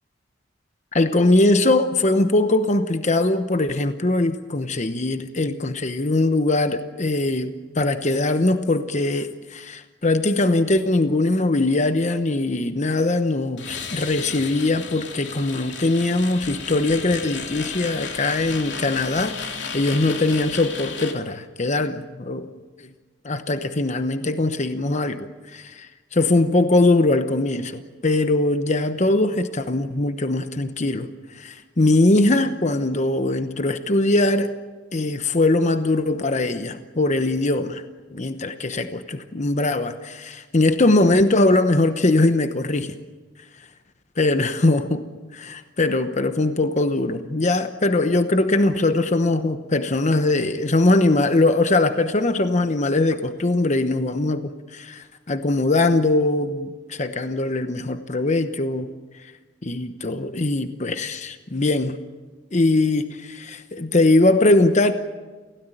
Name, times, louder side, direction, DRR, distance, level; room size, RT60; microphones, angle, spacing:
voice 1, 0.9-22.5 22.8-22.9 23.2-34.5 34.9-37.8 38.1-43.0 44.2-45.0 45.3-58.9 59.2-59.3 59.6-62.0 62.5-64.9, left 2 dB, 40° left, 9 dB, 1.0 m, -21 dB
sound 1, 13.6-21.1, left 5 dB, 70° left, 2.8 m, -34 dB
28.5 x 17.0 x 9.1 m, 1.3 s
head